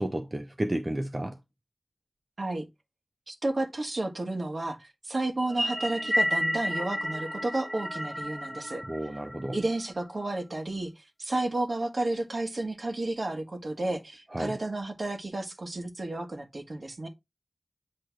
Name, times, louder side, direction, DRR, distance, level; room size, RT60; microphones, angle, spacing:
voice 1, 0.0-1.4 8.8-9.6 14.3-14.6, right 1 dB, 30° right, 0.8 m, -32 dB
voice 2, 3.3-8.8 9.5-10.9 11.2-17.1, right 2 dB, 55° right, 1.5 m, -32 dB
sound 1, 5.4-9.9, equal, 5° right, 1.4 m, -31 dB
8.2 x 3.3 x 4.5 m
wide cardioid pair, 80°, 0 cm